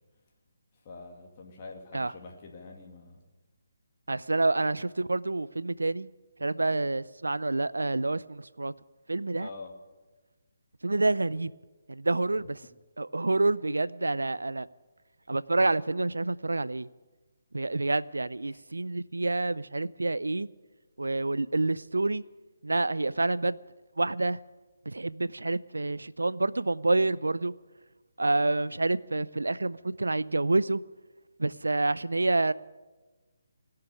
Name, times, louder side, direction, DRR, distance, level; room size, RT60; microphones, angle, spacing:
voice 1, 0.8-3.2 9.4-9.7 12.3-12.5, left 3 dB, 35° left, 1 dB, 2.4 m, -45 dB
voice 2, 4.1-6.1 6.4-8.7 9.1-9.5 10.8-11.5 11.9-12.6 13.0-14.7 15.3-16.9 17.5-20.5 21.0-22.2 22.6-23.6 24.0-24.4 24.9-27.5 28.2-30.8 31.4-32.5, right 2 dB, 90° right, 18 dB, 0.5 m, -28 dB
19.0 x 6.7 x 9.7 m, 1.2 s
figure-of-eight pair, 150°, 0 cm